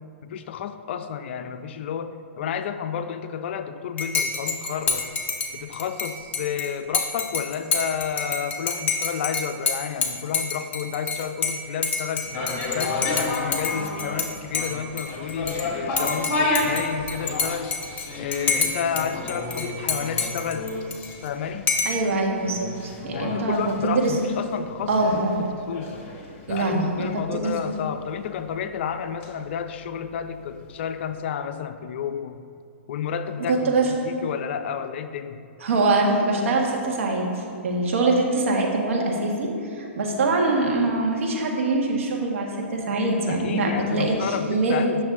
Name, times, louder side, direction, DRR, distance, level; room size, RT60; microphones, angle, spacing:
voice 1, 0.2-5.0 5.5-12.3 12.7-17.7 18.2-20.7 21.2-21.7 23.1-26.0 26.5-32.4 32.9-33.7 34.0-35.4 43.3-45.0, left 7 dB, 55° left, 9 dB, 0.5 m, -31 dB
Dishes pots and pans / Cutlery silverware / Chink clink, 4.0-14.3 14.5-15.6 16.0-19.0 19.3-21.3 21.7-22.0, left 4 dB, 20° left, 0.8 m, -28 dB
sound 1, 12.2-30.4 30.7-30.8, left 2 dB, 35° left, 1.7 m, -32 dB
voice 2, 21.8-24.1 24.9-25.4 26.5-27.5 33.4-33.9 35.6-39.5 39.8-44.9, right 2 dB, 70° right, 0 dB, 1.5 m, -23 dB
8.6 x 6.1 x 3.7 m, 2.4 s
hypercardioid pair, 135°, 7 cm